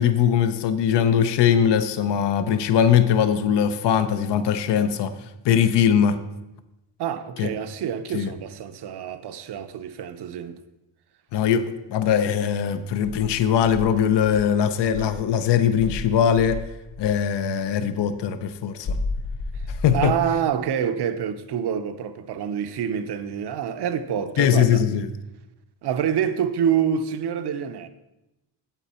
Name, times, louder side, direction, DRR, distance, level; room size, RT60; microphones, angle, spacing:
voice 1, 0.0-5.1 5.4-6.2 7.4-7.5 8.1-8.3 11.3-16.6 17.0-19.0 19.7-20.1 24.4-25.1, left 8 dB, 65° left, 0.7 m, -21 dB
voice 2, 7.0-10.6 19.5-19.6 19.9-24.8 25.8-27.9, right 8 dB, 60° right, 0.8 m, -27 dB
Insect, 13.0-15.3 15.8-17.2 18.8-20.5, left 3 dB, 90° left, 1.7 m, -32 dB
10.0 x 7.8 x 4.3 m
cardioid pair, 160°, 45 cm